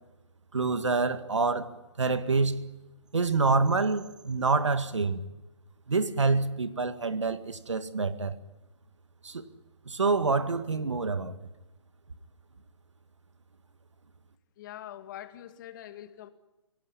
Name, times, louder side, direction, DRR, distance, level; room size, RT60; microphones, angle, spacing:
voice 1, 0.5-1.7 2.0-2.6 3.1-5.2 5.9-8.4 9.2-9.4 9.9-11.3, right 4 dB, 80° right, 1.9 m, -27 dB
voice 2, 14.6-16.3, left 12 dB, 40° left, 2.1 m, -44 dB
27.0 x 17.5 x 9.9 m
figure-of-eight pair, 130°, 15 cm